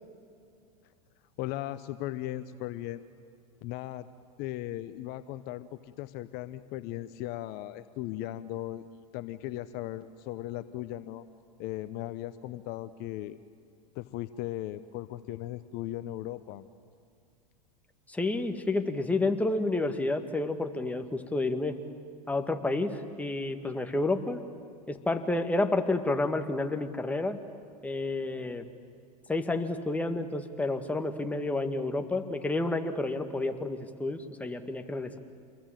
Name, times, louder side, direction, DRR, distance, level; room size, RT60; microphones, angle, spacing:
voice 1, 1.4-3.0 3.6-4.1 4.4-11.3 11.6-13.4 13.9-16.6, left 14 dB, 50° left, 13 dB, 0.9 m, -37 dB
voice 2, 18.1-21.8 22.3-24.4 24.9-27.4 27.8-28.7 29.3-35.2, left 2 dB, 5° left, 6 dB, 1.8 m, -30 dB
27.5 x 21.5 x 9.2 m, 2.4 s
hypercardioid pair, 115°, 21 cm